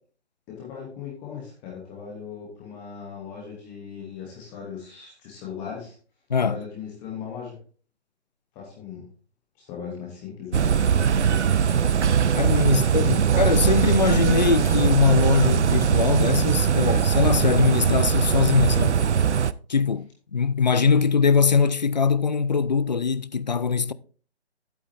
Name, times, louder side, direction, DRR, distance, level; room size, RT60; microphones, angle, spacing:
voice 1, 0.5-5.9 6.4-7.6 8.5-9.0 9.6-11.1 12.2-12.3 12.6-13.2, left 7 dB, 5° left, 0.8 m, -38 dB
voice 2, 6.3-6.6 12.3-19.0 19.7-23.9, left 5 dB, 40° left, 0.4 m, -22 dB
sound 1, 10.5-19.5, right 7 dB, 90° right, 0.6 m, -21 dB
11.0 x 8.5 x 2.6 m
hypercardioid pair, 160°, 34 cm